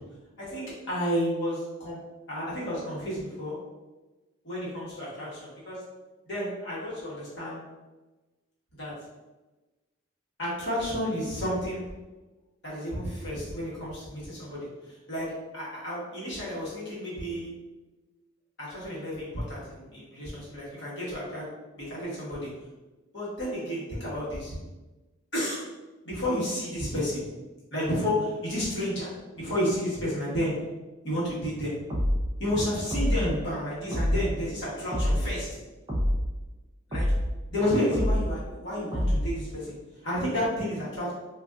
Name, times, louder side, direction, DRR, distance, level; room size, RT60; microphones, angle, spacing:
voice 1, 0.4-2.0 2.3-3.6 4.4-5.8 6.2-7.6 8.8-8.9 10.4-11.9 12.6-17.5 18.6-21.5 21.7-22.5 23.1-24.6 25.3-25.6 26.0-27.2 27.7-30.5 31.0-31.7 32.4-35.5 36.9-37.1 37.5-39.8 40.0-41.1, equal, 55° left, -7 dB, 1.3 m, -31 dB
sound 1, 31.9-32.3 32.9-33.3 33.9-34.3 34.9-35.3 35.9-36.3 36.9-37.3 37.9-38.3 38.9-39.3, equal, 20° right, 0.7 m, -26 dB
3.9 x 2.5 x 2.4 m, 1.2 s
head